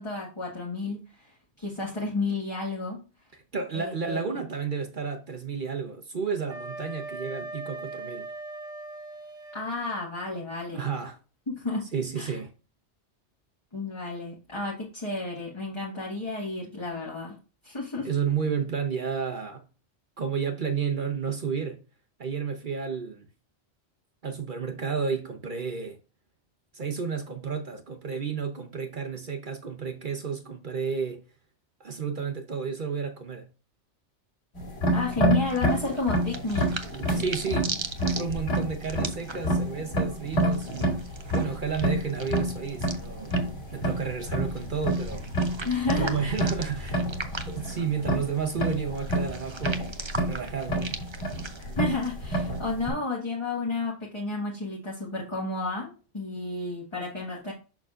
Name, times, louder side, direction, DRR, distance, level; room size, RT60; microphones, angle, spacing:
voice 1, 0.0-3.0 3.7-4.2 9.5-10.9 11.5-11.9 12.2-12.4 13.7-17.4 17.6-18.1 34.9-36.7 45.6-46.2 51.8-57.5, left 3 dB, 25° left, 1.5 m, -32 dB
voice 2, 3.3-8.3 10.7-11.2 11.9-12.5 18.0-19.6 20.2-21.8 22.2-23.3 24.2-26.0 26.7-31.2 31.8-33.5 37.1-37.7 38.0-40.9 41.3-43.3 43.7-45.3 46.0-47.1 47.5-49.9 50.3-50.8, right 6 dB, 45° right, 1.0 m, -31 dB
Wind instrument woodwind instrument, 6.5-9.7, right 2 dB, 85° right, 1.4 m, -39 dB
sound 1, 34.6-52.9, right 1 dB, 60° left, 2.5 m, -29 dB
sound 2, 35.5-52.6, right 4 dB, 30° right, 0.6 m, -41 dB
6.5 x 6.1 x 2.5 m
omnidirectional pair, 1.2 m